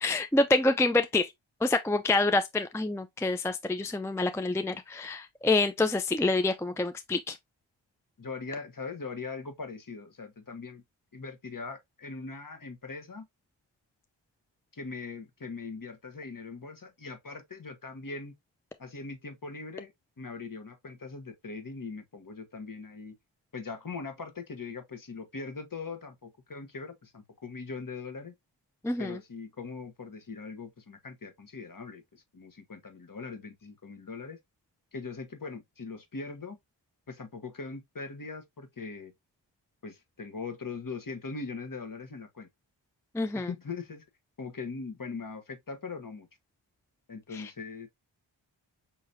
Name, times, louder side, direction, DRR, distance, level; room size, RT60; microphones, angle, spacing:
voice 1, 0.0-1.3 1.6-7.4 28.8-29.2 43.1-43.5 47.3-47.5, left 2 dB, 5° left, 0.5 m, -27 dB
voice 2, 8.2-10.8 11.1-13.2 14.7-18.3 18.8-23.1 23.5-28.3 29.0-34.4 34.9-36.6 37.1-39.1 39.8-42.5 43.3-44.0 44.4-46.3 47.1-47.9, left 4 dB, 45° left, 1.4 m, -41 dB
5.7 x 3.1 x 2.6 m
cardioid pair, 45°, 48 cm